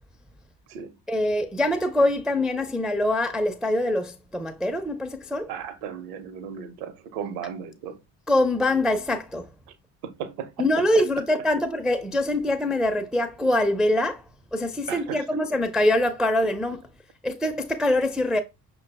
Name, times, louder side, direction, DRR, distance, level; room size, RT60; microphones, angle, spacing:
voice 1, 1.1-5.5 8.3-9.4 10.6-14.2 14.5-16.8 17.2-18.4, left 1 dB, ahead, 0.4 m, -24 dB
voice 2, 5.5-8.0 10.0-10.5 14.9-15.2, right 8 dB, 70° right, 0.8 m, -35 dB
5.6 x 2.3 x 3.3 m
figure-of-eight pair, 45°, 48 cm